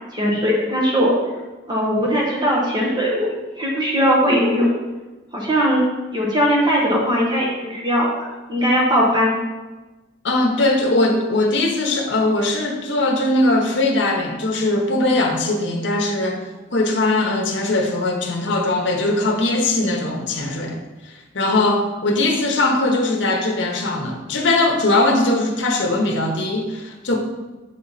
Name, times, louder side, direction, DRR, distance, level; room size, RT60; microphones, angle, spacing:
voice 1, 0.1-1.2 1.7-4.7 5.3-5.8 6.1-9.3, equal, 20° right, -4 dB, 1.0 m, -19 dB
voice 2, 10.2-20.8 21.0-27.2, left 2 dB, 60° left, 2 dB, 0.9 m, -20 dB
6.8 x 4.2 x 4.0 m, 1.2 s
head